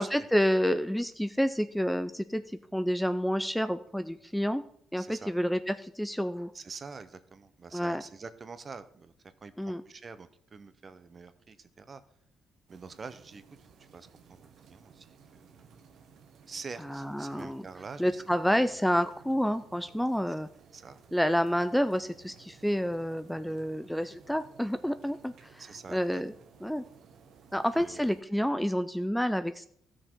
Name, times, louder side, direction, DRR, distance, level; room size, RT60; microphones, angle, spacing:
voice 1, 0.0-4.6 4.9-6.5 7.7-8.0 9.6-9.8 16.9-17.6 18.0-20.5 21.1-25.6 25.9-26.3 26.6-26.8 27.5-29.7, equal, 5° left, 11 dB, 0.4 m, -29 dB
voice 2, 5.0-5.3 6.5-9.1 9.4-12.0 12.7-15.5 16.5-18.7 20.7-21.0 23.3-23.6 25.6-26.2 27.7-28.1, right 4 dB, 40° right, 12 dB, 0.8 m, -46 dB
sound 1, 12.7-28.2, right 6 dB, 75° right, 1.2 m, -57 dB
14.0 x 6.3 x 4.5 m, 0.69 s
cardioid pair, 90°, 0 cm